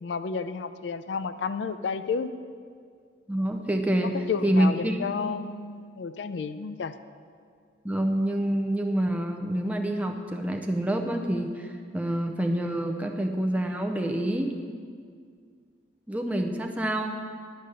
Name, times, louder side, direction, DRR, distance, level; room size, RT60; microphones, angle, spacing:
voice 1, 0.0-2.4 4.1-6.9, left 5 dB, 70° left, 12 dB, 0.4 m, -31 dB
voice 2, 3.3-4.1 4.4-5.0 7.8-14.5 16.1-17.2, right 1 dB, 10° right, 4 dB, 0.5 m, -27 dB
11.5 x 5.1 x 6.7 m, 2.1 s
head